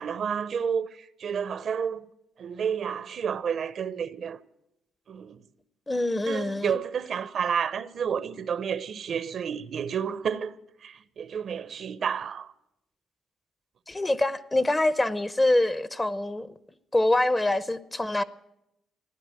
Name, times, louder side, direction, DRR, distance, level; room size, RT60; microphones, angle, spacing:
voice 1, 0.0-2.1 2.4-4.4 5.1-5.4 6.3-12.5, right 7 dB, 60° right, 0.7 m, -30 dB
voice 2, 5.9-6.7 13.9-16.5 16.9-18.2, left 1 dB, 15° left, 0.7 m, -25 dB
15.0 x 10.5 x 9.0 m
cardioid pair, 90°, 0 cm